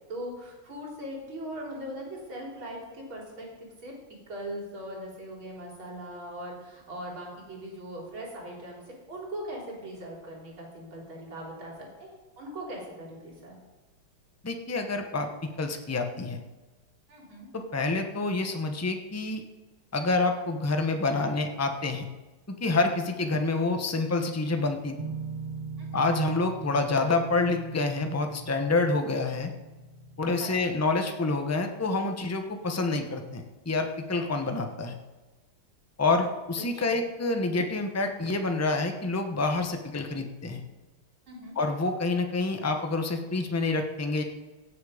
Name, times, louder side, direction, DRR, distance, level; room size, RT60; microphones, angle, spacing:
voice 1, 0.1-3.9 4.3-8.8 9.1-13.6 17.1-17.5 25.8-26.0 30.4-30.8 36.6-37.0 41.3-41.6, right 1 dB, 80° right, -2 dB, 4.2 m, -40 dB
voice 2, 14.4-16.4 17.5-19.4 19.9-22.1 22.6-25.0 25.9-29.5 30.2-34.9 36.0-40.6 41.6-44.2, left 3 dB, 15° left, 5 dB, 0.5 m, -27 dB
sound 1, 25.0-30.6, right 4 dB, 30° right, 0.7 m, -41 dB
16.5 x 7.7 x 5.0 m, 1.2 s
omnidirectional pair, 2.2 m